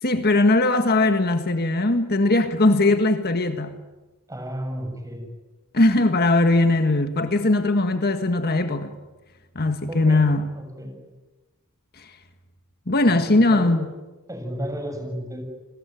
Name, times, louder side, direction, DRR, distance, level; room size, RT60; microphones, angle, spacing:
voice 1, 0.0-3.8 5.7-9.0 9.5-10.5 12.0-12.1 12.9-13.9, left 2 dB, 45° left, 1.7 m, -20 dB
voice 2, 4.3-5.3 9.9-10.2 10.5-11.0 13.0-13.8 14.3-15.4, equal, 15° right, 7.5 m, -33 dB
30.0 x 21.5 x 9.3 m
head